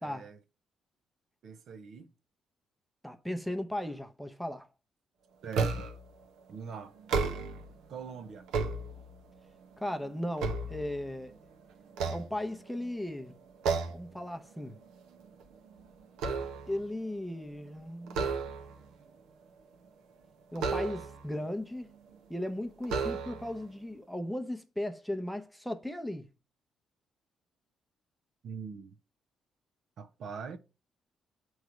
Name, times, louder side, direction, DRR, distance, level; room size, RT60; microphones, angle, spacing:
voice 1, 0.0-0.4 1.4-2.1 5.4-5.9 6.5-6.9 7.9-8.5 28.4-29.0 30.0-30.6, right 6 dB, 65° right, 0.7 m, -43 dB
voice 2, 3.0-4.7 9.8-11.3 12.1-13.3 13.9-14.8 16.7-18.4 20.5-21.9 22.3-26.2, left 1 dB, ahead, 0.7 m, -36 dB
sound 1, 5.5-6.1 7.0-7.7 8.3-9.4 9.9-11.4 11.9-12.9 13.6-14.1 14.5-14.8 15.1-16.9 18.1-18.9 20.6-21.3 22.1-22.2 22.8-23.6, right 4 dB, 90° right, 0.9 m, -33 dB
7.9 x 3.2 x 4.9 m
cardioid pair, 90°, 0 cm